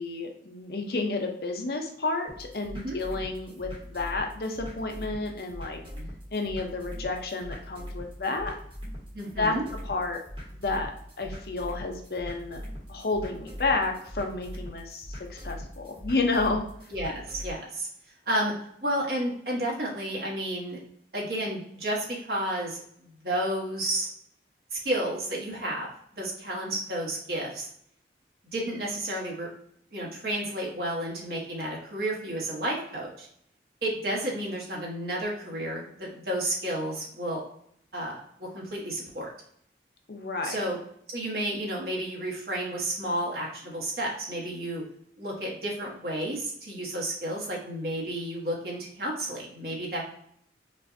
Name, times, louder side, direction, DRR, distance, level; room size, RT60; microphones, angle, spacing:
voice 1, 0.0-5.8 6.3-8.5 9.4-9.6 9.8-10.2 10.5-10.9 11.2-12.6 12.9-16.7 40.1-40.6, left 3 dB, 55° left, 3 dB, 0.7 m, -30 dB
sound 1, 2.3-17.5, equal, 30° right, 1.4 m, -41 dB
voice 2, 9.1-9.6 16.9-17.9 18.3-18.5 18.8-20.8 21.1-24.1 24.7-27.7 28.5-29.5 29.9-33.3 33.8-37.4 37.9-39.3 40.4-40.8 41.1-44.8 45.2-50.0, right 1 dB, 55° right, -3 dB, 1.4 m, -31 dB
5.3 x 2.6 x 2.7 m, 0.68 s
head